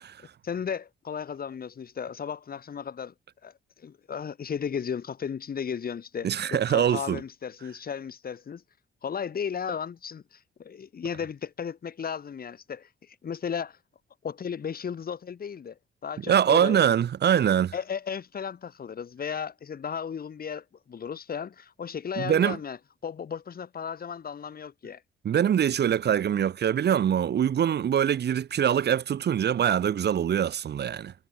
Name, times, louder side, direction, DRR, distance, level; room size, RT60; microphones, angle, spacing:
voice 1, 0.4-3.1 3.4-8.6 9.0-13.8 14.2-16.8 17.7-22.8 23.0-25.0, left 7 dB, 50° left, 5.3 m, -35 dB
voice 2, 6.2-7.2 16.3-17.7 22.2-22.6 25.2-31.1, right 9 dB, 55° right, 1.9 m, -23 dB
cardioid pair, 90°, 20 cm